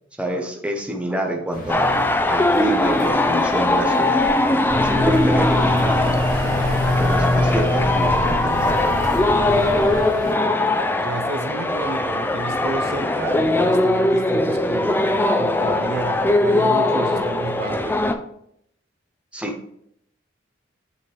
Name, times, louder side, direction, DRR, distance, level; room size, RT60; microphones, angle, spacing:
voice 1, 0.2-4.2 4.8-6.0 7.0-9.0 19.3-19.7, equal, 5° right, 0.8 m, -27 dB
sound 1, 1.5-10.4, equal, 45° left, 1.8 m, -35 dB
sound 2, 1.7-18.1, left 2 dB, 10° left, 0.4 m, -20 dB
sound 3, 4.7-10.0, left 1 dB, 25° right, 2.0 m, -23 dB
voice 2, 11.0-18.0, right 3 dB, 55° right, 0.5 m, -31 dB
8.1 x 3.8 x 3.2 m
head